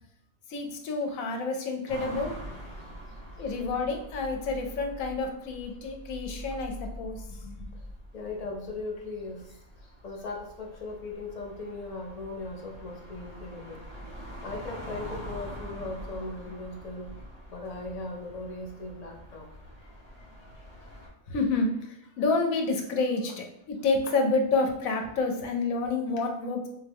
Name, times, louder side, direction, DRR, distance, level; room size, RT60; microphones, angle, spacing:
voice 1, 0.5-2.3 3.4-7.7 15.8-15.9 21.3-26.7, left 3 dB, 80° left, 3 dB, 1.1 m, -29 dB
sound 1, 1.9-21.1, equal, 25° right, 1.1 m, -44 dB
voice 2, 8.1-13.8 14.4-17.1 17.5-19.5, left 2 dB, 55° left, 0 dB, 0.4 m, -38 dB
3.4 x 2.6 x 3.4 m, 0.82 s
omnidirectional pair, 1.4 m